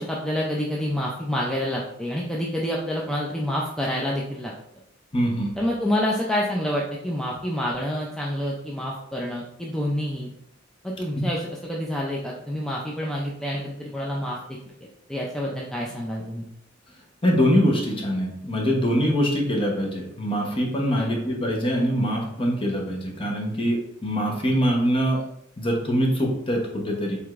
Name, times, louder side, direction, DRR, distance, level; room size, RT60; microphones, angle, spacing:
voice 1, 0.0-4.5 5.6-10.3 10.8-16.5 21.0-21.2, equal, 5° left, -3 dB, 0.4 m, -28 dB
voice 2, 5.1-5.5 11.2-11.3 17.2-25.2 25.6-27.2, equal, 30° left, 0 dB, 0.8 m, -23 dB
4.7 x 3.4 x 2.4 m, 0.76 s
head